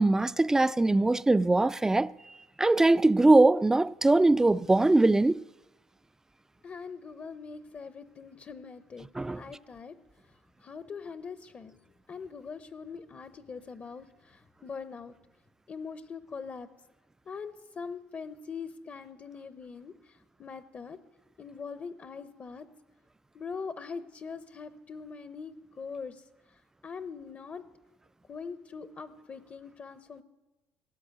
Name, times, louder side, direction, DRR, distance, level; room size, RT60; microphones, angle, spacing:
voice 1, 0.0-2.1 2.6-5.4 9.2-9.4, right 2 dB, 10° right, 0.4 m, -22 dB
voice 2, 6.6-9.1 9.4-10.0 10.3-15.1 15.7-16.7 17.3-21.0 21.4-22.7 23.3-27.6 28.3-30.2, left 5 dB, 40° left, 0.8 m, -42 dB
16.5 x 7.7 x 8.9 m
supercardioid pair, 85°, 4 cm